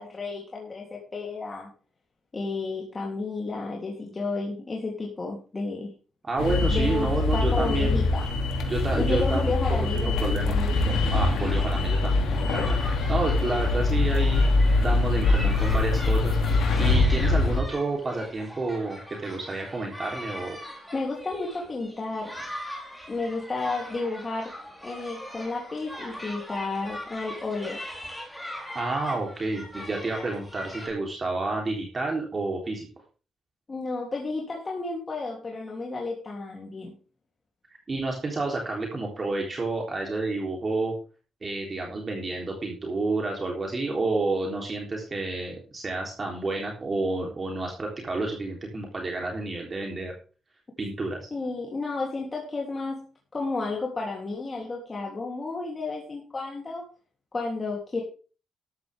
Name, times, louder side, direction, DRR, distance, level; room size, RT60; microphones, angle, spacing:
voice 1, 0.0-1.7 2.3-5.9 6.7-8.3 8.9-11.0 20.9-22.3 23.1-24.5 24.8-27.8 33.7-36.9 51.3-53.1 53.3-56.8 57.3-58.0, left 3 dB, 25° left, -2 dB, 3.3 m, -32 dB
voice 2, 6.2-8.0 8.7-9.6 9.9-10.6 11.1-14.4 14.8-16.4 16.8-20.6 28.7-32.9 37.9-41.0 41.4-50.1 50.8-51.3, right 3 dB, 30° right, 0 dB, 3.7 m, -30 dB
sound 1, 6.4-17.6, left 3 dB, 85° left, 2.8 m, -23 dB
sound 2, 11.4-30.9, equal, ahead, 4.8 m, -41 dB
13.5 x 11.5 x 3.7 m, 0.36 s
cardioid pair, 110°, 0 cm